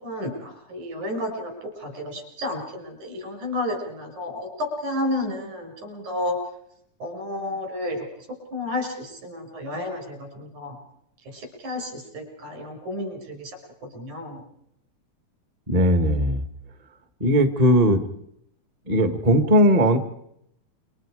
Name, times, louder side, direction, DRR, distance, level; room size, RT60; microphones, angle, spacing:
voice 1, 0.0-1.5 1.8-6.4 7.0-10.8 11.3-13.5 13.9-14.4, left 1 dB, 75° right, 3 dB, 6.9 m, -31 dB
voice 2, 15.7-16.4 17.2-18.0 18.9-20.0, equal, 30° right, 8 dB, 0.6 m, -18 dB
28.5 x 25.0 x 5.0 m, 0.76 s
omnidirectional pair, 3.5 m